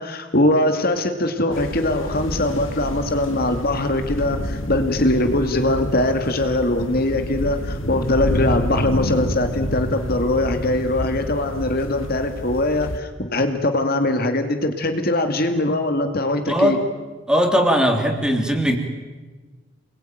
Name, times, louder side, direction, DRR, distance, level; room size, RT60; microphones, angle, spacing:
voice 1, 0.0-16.8, left 1 dB, 50° left, 6 dB, 2.2 m, -21 dB
sound 1, 1.5-13.0, left 1 dB, 90° left, 2.1 m, -28 dB
voice 2, 16.5-16.8 17.3-18.8, equal, 5° right, 4 dB, 3.3 m, -19 dB
29.0 x 21.5 x 9.3 m, 1.3 s
head